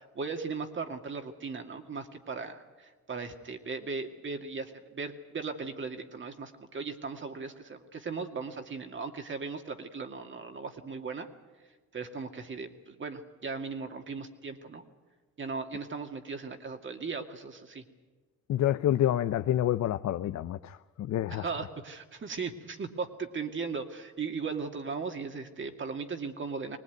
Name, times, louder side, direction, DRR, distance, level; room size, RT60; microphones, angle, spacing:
voice 1, 0.0-11.3 11.9-14.8 15.4-17.8 21.3-26.8, right 4 dB, 40° right, 2.3 m, -37 dB
voice 2, 18.5-21.4, left 12 dB, 65° left, 0.7 m, -28 dB
21.5 x 19.0 x 9.4 m
cardioid pair, 90°, 30 cm